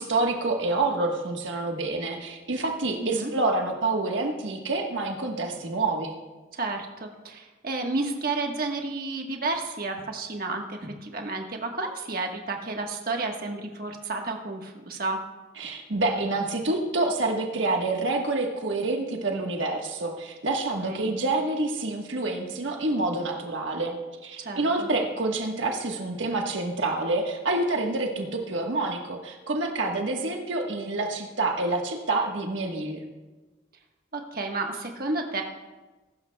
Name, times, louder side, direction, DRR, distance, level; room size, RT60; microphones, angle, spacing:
voice 1, 0.0-6.1 15.6-24.0 24.2-33.0, right 2 dB, 80° right, 2 dB, 1.4 m, -27 dB
voice 2, 3.0-3.3 6.5-15.2 20.8-21.1 24.4-24.9 34.1-35.4, right 3 dB, 50° right, 2 dB, 1.4 m, -31 dB
21.5 x 12.0 x 2.3 m, 1.2 s
head